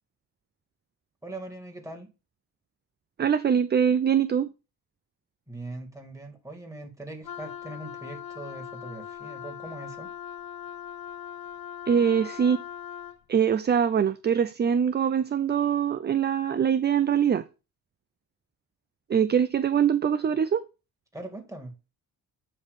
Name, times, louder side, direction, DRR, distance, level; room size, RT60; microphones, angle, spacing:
voice 1, 1.2-2.1 5.5-10.1 21.1-21.7, right 2 dB, 10° right, 2.3 m, -41 dB
voice 2, 3.2-4.5 11.9-12.6 13.3-17.5 19.1-20.6, right 8 dB, 30° right, 0.4 m, -23 dB
Wind instrument woodwind instrument, 7.2-13.2, left 9 dB, 60° left, 0.6 m, -40 dB
8.9 x 3.1 x 6.5 m
cardioid pair, 90°, 40 cm